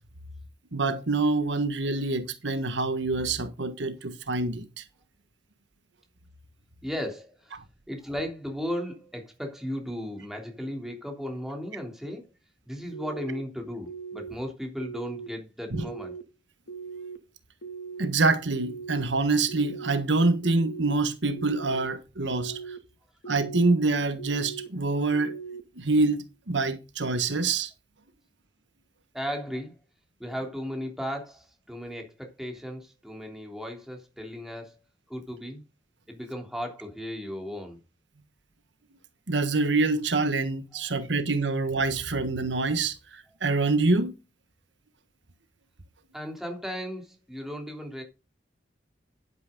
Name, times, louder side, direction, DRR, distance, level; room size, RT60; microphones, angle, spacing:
voice 1, 0.7-4.6 15.7-15.8 18.0-22.5 23.3-25.4 25.8-27.7 39.3-42.9 43.4-44.1, right 3 dB, 85° right, 1.4 m, -26 dB
voice 2, 6.8-7.6 7.9-12.3 12.7-16.2 22.5-22.6 29.1-29.7 30.2-34.8 35.1-35.6 36.1-37.8 40.7-41.0 46.1-48.0, equal, ahead, 3.3 m, -36 dB
sound 1, 12.9-13.4 13.9-14.3 14.8-15.3 15.7-16.2 16.7-17.2 17.6-18.1 18.5-19.0 19.5-20.0 20.4-20.9 21.4-21.8 22.3-22.8 23.2-23.7 24.2-24.7 25.1-25.6, right 5 dB, 85° left, 2.3 m, -39 dB
10.5 x 9.5 x 3.9 m
head